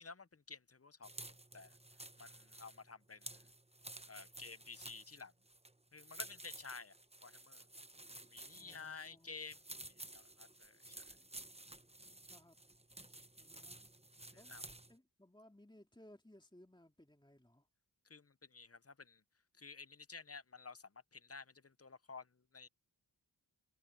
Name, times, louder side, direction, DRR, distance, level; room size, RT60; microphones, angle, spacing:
voice 1, 0.0-1.8 2.2-3.5 4.1-5.3 5.9-7.0 7.2-7.6 8.3-9.6 9.9-11.2 14.3-14.6 18.0-19.2 19.6-22.7, left 4 dB, 35° left, 0.8 m, -53 dB
sound 1, 1.0-15.0, right 1 dB, 15° right, 1.1 m, -53 dB
voice 2, 8.6-9.4 12.2-12.6 13.4-13.8 14.3-14.6 14.9-17.7, left 1 dB, 10° left, 3.1 m, -62 dB
wide cardioid pair, 45°, 44 cm